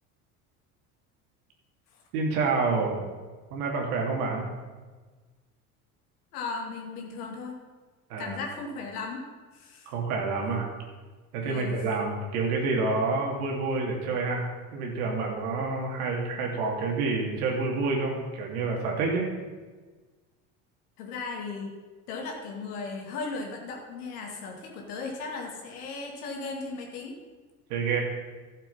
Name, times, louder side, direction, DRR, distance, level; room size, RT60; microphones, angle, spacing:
voice 1, 2.1-3.1 3.5-4.5 8.1-8.4 9.9-10.7 11.3-19.3 27.7-28.0, right 3 dB, 75° right, 0 dB, 2.6 m, -28 dB
voice 2, 6.3-7.6 8.2-9.2 9.5-9.9 10.4-10.6 11.4-12.0 21.0-21.7 22.1-27.2, left 4 dB, 80° left, 0 dB, 2.3 m, -36 dB
12.5 x 7.4 x 5.6 m, 1.4 s
hypercardioid pair, 80°, 44 cm